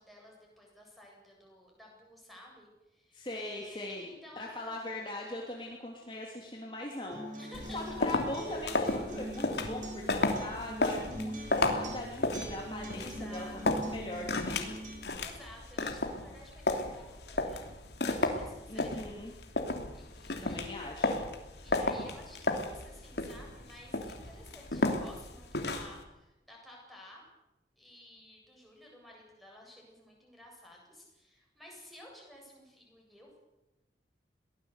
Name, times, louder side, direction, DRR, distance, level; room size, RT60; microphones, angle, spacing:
voice 1, 0.0-4.9 7.4-7.8 8.1-8.2 12.9-13.9 15.2-17.8 18.0-19.4 19.9-20.6 21.6-27.2 27.8-33.4, left 1 dB, ahead, -2 dB, 7.9 m, -54 dB
voice 2, 3.1-4.1 4.4-7.4 7.7-14.7 18.7-19.3 20.4-21.2, left 1 dB, 30° left, -1 dB, 2.9 m, -41 dB
Acoustic guitar, 7.1-15.1, equal, 45° right, 5.0 m, -43 dB
sound 1, 7.5-26.0, left 2 dB, 75° left, 2.9 m, -33 dB
23.5 x 18.0 x 8.2 m, 0.95 s
head